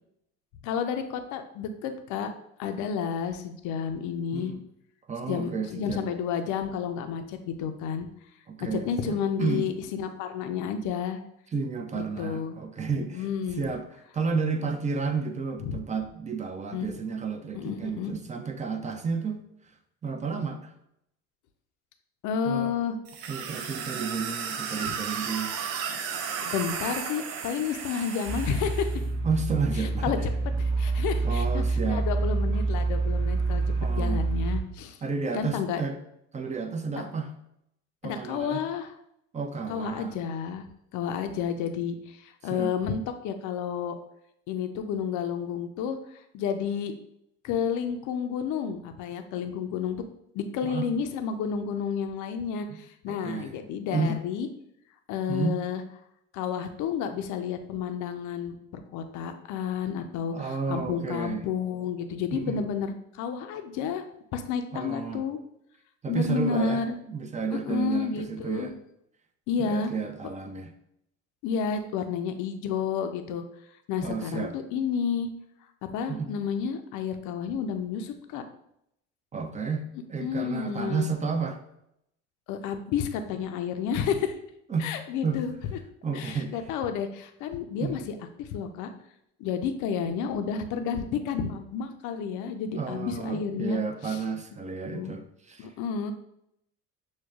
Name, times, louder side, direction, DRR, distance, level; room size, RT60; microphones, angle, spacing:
voice 1, 0.6-2.3 2.6-4.5 5.2-8.1 8.7-11.2 12.0-12.6 13.0-13.7 15.6-15.8 16.7-16.9 17.5-18.2 22.2-23.0 26.4-29.0 29.8-30.2 30.6-33.6 34.0-35.0 35.3-35.8 37.0-37.1 38.0-38.9 39.7-40.6 40.9-44.0 44.5-46.9 47.4-50.0 50.3-54.5 55.1-55.8 56.3-64.0 64.3-65.4 66.1-67.0 67.5-68.8 69.5-69.9 71.4-73.4 73.9-75.3 75.8-78.4 80.2-81.1 82.5-84.4 84.8-85.5 86.1-88.9 89.4-94.2 94.8-95.1 95.6-96.1, left 7 dB, 60° left, 7 dB, 0.5 m, -31 dB
voice 2, 5.1-6.1 8.5-9.7 11.5-13.3 13.6-13.9 14.1-19.4 20.0-20.7 22.5-22.7 23.3-25.5 29.2-30.2 31.2-32.1 33.8-34.2 35.0-36.0 36.3-37.3 38.0-38.6 39.3-40.2 42.5-42.7 50.6-50.9 52.7-52.8 53.1-53.6 53.9-54.2 55.3-55.6 60.3-61.5 62.3-62.7 64.7-65.2 66.0-66.8 67.1-68.7 69.6-70.7 74.0-74.5 76.1-76.3 79.3-81.6 84.7-85.0 85.2-85.4 86.0-86.5 87.8-88.0 92.7-95.7, right 5 dB, 20° right, 6 dB, 0.5 m, -31 dB
sound 1, 23.1-29.0, right 7 dB, 80° right, 0.6 m, -34 dB
sound 2, 28.3-34.6, right 3 dB, 60° right, 1.1 m, -27 dB
6.2 x 2.2 x 2.3 m, 0.77 s
supercardioid pair, 80°, 34 cm